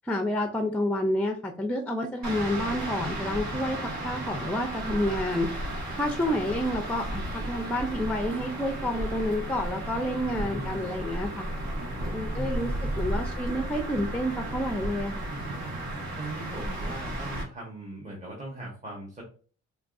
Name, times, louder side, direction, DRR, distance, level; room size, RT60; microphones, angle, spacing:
voice 1, 0.0-3.8 4.0-5.5 5.9-11.5 12.1-12.7 13.0-15.2, left 1 dB, 5° left, 4 dB, 0.5 m, -29 dB
sound 1, 2.2-17.4, right 1 dB, 65° right, 1.4 m, -34 dB
voice 2, 10.2-10.9 11.8-13.1 15.3-15.7 16.2-19.2, right 2 dB, 25° right, -3 dB, 1.2 m, -40 dB
4.5 x 2.3 x 2.5 m, 0.40 s
cardioid pair, 90°, 30 cm